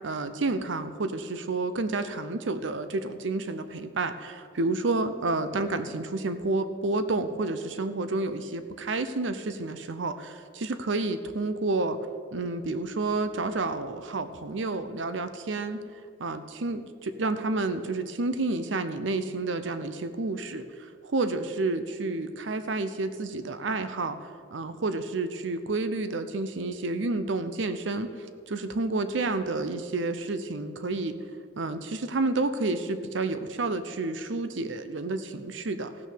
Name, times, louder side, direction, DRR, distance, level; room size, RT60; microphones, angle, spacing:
voice 1, 0.0-12.0 12.3-15.8 16.2-28.1 28.5-31.2 31.6-35.9, right 3 dB, 70° right, 10 dB, 0.7 m, -30 dB
16.5 x 6.5 x 6.6 m, 2.2 s
head